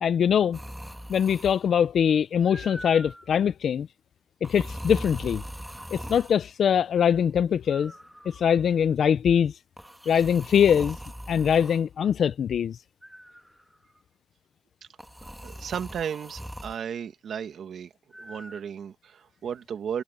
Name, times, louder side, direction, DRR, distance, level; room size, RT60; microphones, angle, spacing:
voice 1, 0.0-0.6 1.1-3.9 4.4-5.4 5.9-7.9 8.3-9.6 10.1-11.0 11.3-12.8, left 8 dB, 70° left, 0.5 m, -22 dB
sound 1, 0.5-1.7 2.4-3.3 4.4-6.4 7.7-8.6 9.8-11.8 13.0-13.7 15.0-16.8 18.1-18.6, equal, 5° right, 1.8 m, -41 dB
voice 2, 15.4-17.9 18.2-20.0, right 8 dB, 75° right, 2.0 m, -34 dB
cardioid pair, 65°, 0 cm